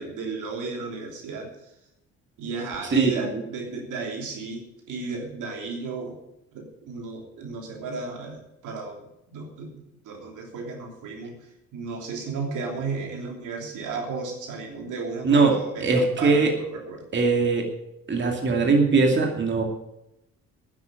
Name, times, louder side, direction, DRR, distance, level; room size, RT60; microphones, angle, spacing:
voice 1, 0.0-1.5 2.4-6.2 6.5-9.0 9.3-11.4 11.7-17.0, right 4 dB, 85° right, 1 dB, 3.3 m, -34 dB
voice 2, 15.2-16.5 17.1-17.7 18.1-19.6, right 4 dB, 40° right, 2 dB, 2.5 m, -21 dB
9.9 x 8.6 x 9.5 m, 0.85 s
cardioid pair, 90°, 30 cm